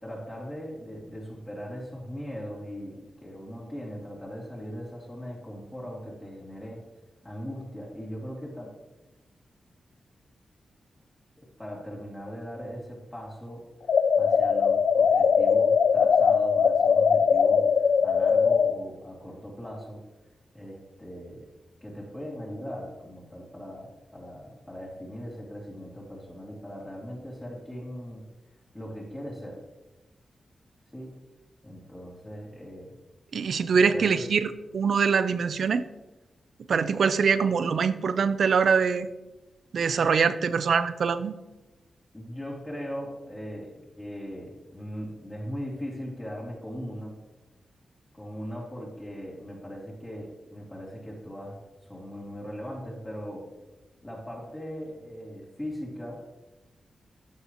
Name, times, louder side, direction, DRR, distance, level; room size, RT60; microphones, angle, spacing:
voice 1, 0.0-6.8 7.2-8.7 11.4-20.0 20.5-21.5 21.8-28.3 28.7-29.6 30.9-31.1 31.6-33.0 33.7-34.2 42.1-47.2 48.1-53.5 54.0-56.2, equal, 15° left, -5 dB, 2.7 m, -39 dB
sound 1, 13.9-18.8, left 6 dB, 80° left, 0.3 m, -21 dB
voice 2, 33.3-35.9 36.7-39.1 39.7-41.3, right 6 dB, 70° right, 12 dB, 0.5 m, -23 dB
12.5 x 6.9 x 3.0 m, 1.1 s
cardioid pair, 90°, 0 cm